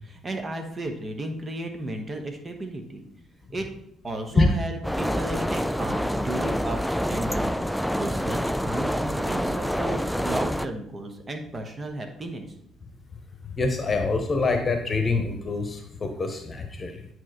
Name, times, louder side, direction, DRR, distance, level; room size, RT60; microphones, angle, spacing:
voice 1, 0.1-3.0 3.5-3.7 4.0-12.5, right 2 dB, 30° right, 4 dB, 1.3 m, -34 dB
sound 1, 4.8-10.7, equal, ahead, 0.4 m, -27 dB
voice 2, 13.4-17.1, left 3 dB, 30° left, 5 dB, 1.1 m, -25 dB
9.0 x 4.7 x 3.9 m, 0.71 s
figure-of-eight pair, 45°, 0 cm